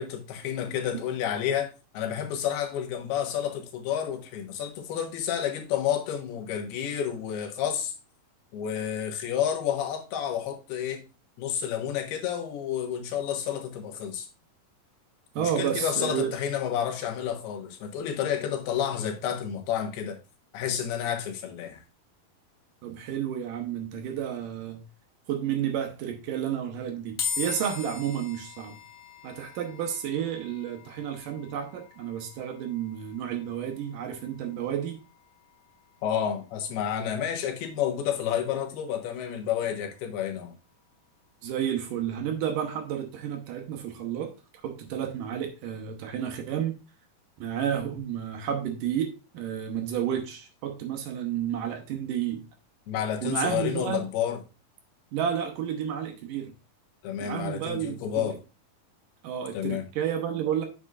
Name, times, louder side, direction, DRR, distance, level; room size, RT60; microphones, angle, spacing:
voice 1, 0.0-7.9 8.5-11.0 11.4-14.3 15.4-20.2 20.5-21.8 36.0-40.5 52.9-54.4 57.0-58.4 59.5-59.8, left 9 dB, 85° left, 3.3 m, -30 dB
voice 2, 15.4-16.3 22.8-24.8 25.3-28.8 29.2-35.0 41.4-44.3 44.6-46.7 47.4-52.4 53.2-54.0 55.1-56.5 57.2-58.3 59.2-60.7, right 9 dB, 70° right, 2.3 m, -31 dB
sound 1, 27.2-40.5, left 6 dB, 55° left, 0.9 m, -42 dB
8.0 x 7.9 x 2.4 m
omnidirectional pair, 4.4 m